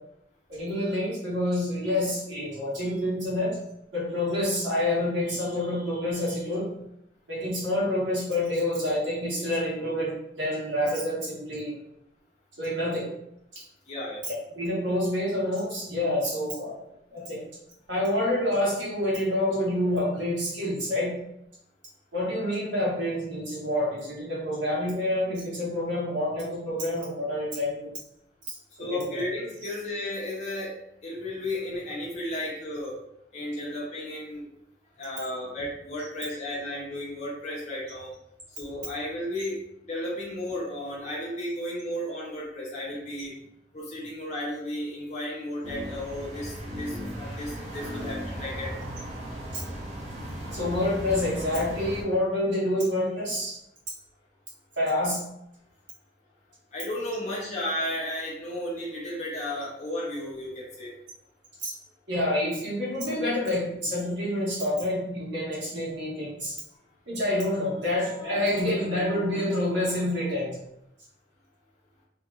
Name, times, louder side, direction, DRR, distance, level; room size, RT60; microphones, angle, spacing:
voice 1, 0.5-3.6 3.9-6.7 7.3-11.7 12.6-13.1 13.5-13.6 14.6-16.8 17.1-17.4 17.9-21.1 22.1-27.9 28.5-29.2 49.2-49.6 50.5-53.6 54.8-55.2 61.6-61.7 62.1-66.6 67.1-70.5, left 1 dB, 85° right, -6 dB, 1.3 m, -28 dB
voice 2, 13.9-14.2 28.8-30.7 31.0-32.9 33.3-34.4 35.0-38.1 38.6-39.6 39.8-43.3 43.7-48.7 56.7-60.9, left 1 dB, 40° left, -5 dB, 0.6 m, -33 dB
sound 1, 45.6-52.0, equal, 40° right, 0.6 m, -36 dB
2.8 x 2.8 x 2.3 m, 0.80 s
head